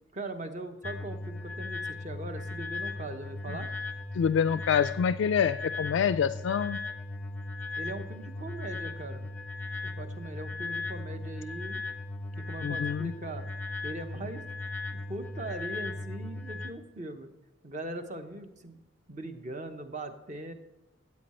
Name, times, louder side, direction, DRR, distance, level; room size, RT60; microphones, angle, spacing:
voice 1, 0.1-3.7 7.8-9.3 9.6-11.8 12.4-13.5 13.8-14.6 14.9-17.3 17.6-18.8 19.1-20.5, right 2 dB, 35° right, 7 dB, 0.9 m, -40 dB
sound 1, 0.8-16.7, left 2 dB, 10° left, 0.7 m, -37 dB
voice 2, 4.1-6.8 12.6-13.1, left 7 dB, 70° left, 12 dB, 0.3 m, -26 dB
14.0 x 8.4 x 4.3 m, 0.97 s
head